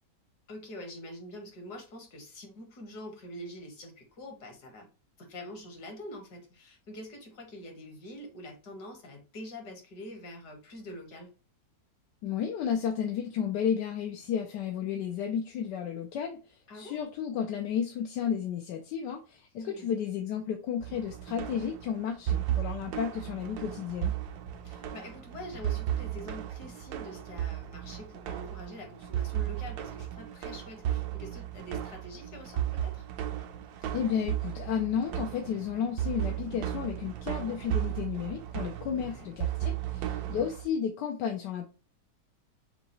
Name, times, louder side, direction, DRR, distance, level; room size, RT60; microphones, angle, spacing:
voice 1, 0.5-4.9 5.2-11.3 16.7-17.0 19.6-19.9 24.6-33.1 38.9-39.3, left 1 dB, 70° left, 3 dB, 2.0 m, -45 dB
voice 2, 12.2-16.4 16.7-24.1 33.9-41.7, left 8 dB, 85° left, 3 dB, 1.3 m, -32 dB
sound 1, 20.8-40.7, right 11 dB, 70° right, 1.0 m, -35 dB
6.5 x 2.4 x 3.0 m, 0.33 s
omnidirectional pair, 1.8 m